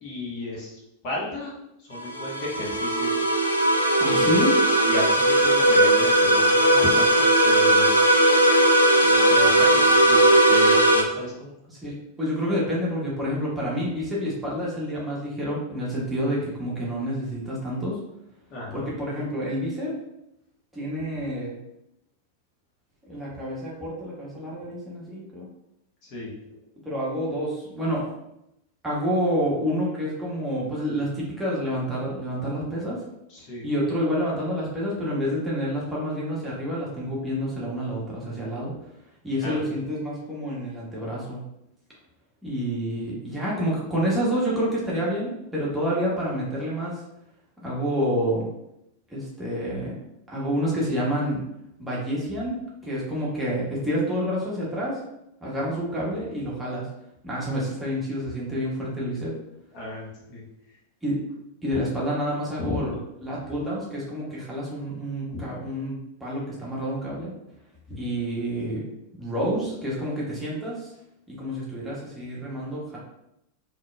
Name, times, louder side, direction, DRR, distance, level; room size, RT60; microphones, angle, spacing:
voice 1, 0.0-1.5 1.9-3.2 4.1-4.4 4.9-8.1 9.0-11.6 18.5-18.9 26.0-26.3 33.3-33.7 39.4-39.6 59.7-60.4 61.7-61.8 62.6-62.8 65.3-65.5, left 1 dB, 40° left, -5 dB, 1.3 m, -34 dB
sound 1, 1.9-11.0, right 1 dB, 85° left, 0.5 m, -18 dB
voice 2, 4.0-4.6 11.7-18.0 18.7-20.0 20.7-21.5 23.1-25.5 26.8-28.0 28.8-33.0 33.6-38.7 39.2-41.4 42.4-46.9 47.6-48.4 49.1-50.0 50.3-51.4 51.8-55.0 55.4-56.9 57.2-59.3 61.0-61.2 61.6-62.9 63.2-67.3 68.0-68.8 69.2-70.9 71.3-73.0, equal, 10° right, -6 dB, 1.3 m, -28 dB
4.2 x 3.0 x 2.3 m, 0.83 s
figure-of-eight pair, 90°, 0 cm